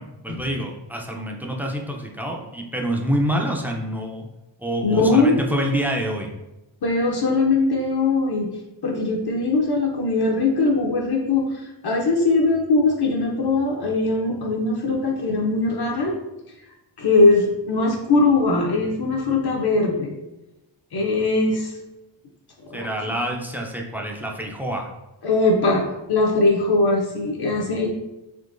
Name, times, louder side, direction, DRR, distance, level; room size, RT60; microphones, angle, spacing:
voice 1, 0.0-4.3 4.6-6.3 22.7-24.9, equal, 5° right, 0 dB, 0.3 m, -27 dB
voice 2, 4.8-5.5 6.8-8.5 8.8-16.1 17.0-20.1 20.9-21.7 22.6-22.9 25.2-25.8 26.1-27.9, left 3 dB, 55° left, 0 dB, 0.6 m, -20 dB
3.7 x 2.9 x 2.5 m, 0.97 s
wide cardioid pair, 100°, 47 cm